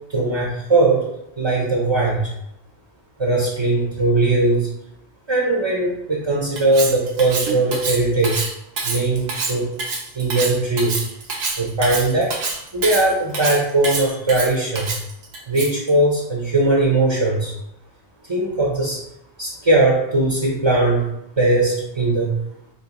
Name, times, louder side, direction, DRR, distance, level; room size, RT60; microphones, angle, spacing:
voice 1, 0.1-1.0 1.4-2.3 3.2-4.7 5.3-8.5 8.8-9.7 10.1-11.0 11.6-12.3 12.7-15.0 15.5-17.5 18.3-19.0 19.4-21.0 21.4-22.3, right 2 dB, 35° right, -4 dB, 0.6 m, -19 dB
Cutlery silverware, 6.6-15.9, right 4 dB, 75° right, 0.9 m, -27 dB
3.9 x 2.9 x 2.9 m, 0.80 s
omnidirectional pair, 1.1 m